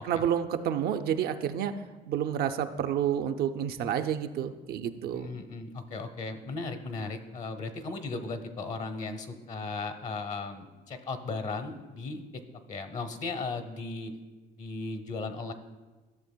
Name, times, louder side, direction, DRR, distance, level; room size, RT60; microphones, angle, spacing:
voice 1, 0.0-1.7 2.1-5.3, right 9 dB, 65° right, 8 dB, 0.5 m, -29 dB
voice 2, 5.1-12.4 12.7-14.1 14.6-15.5, left 3 dB, 45° left, 8 dB, 0.8 m, -36 dB
13.0 x 6.7 x 2.2 m, 1.2 s
cardioid pair, 110°, 17 cm